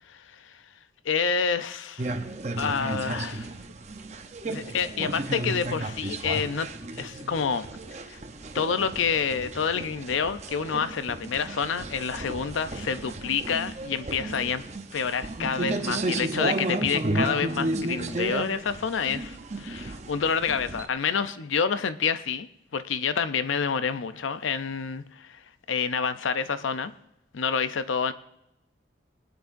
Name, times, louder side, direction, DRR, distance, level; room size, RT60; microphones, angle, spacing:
voice 1, 0.1-0.6 1.0-2.2 2.6-3.5 4.5-6.7 6.9-7.7 7.9-8.2 8.5-14.7 14.9-22.5 22.7-25.4 25.7-26.9 27.3-28.1, left 6 dB, 85° left, 12 dB, 0.5 m, -28 dB
sound 1, 2.0-20.9, right 2 dB, 35° right, 0.7 m, -33 dB
20.5 x 9.5 x 2.6 m, 0.84 s
head